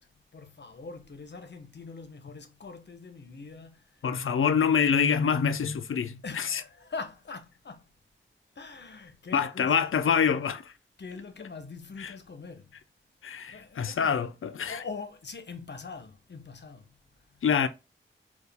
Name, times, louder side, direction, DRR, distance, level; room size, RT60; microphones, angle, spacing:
voice 1, 0.0-4.0 6.2-7.9 8.6-9.7 11.0-12.7 13.5-14.1 14.7-17.0 17.3-17.4, left 4 dB, 55° left, 0.8 m, -43 dB
voice 2, 4.0-6.6 9.3-10.7 12.0-12.1 13.2-14.8 17.4-17.7, left 7 dB, 75° left, 0.5 m, -26 dB
4.6 x 2.4 x 3.3 m
wide cardioid pair, 70°, 21 cm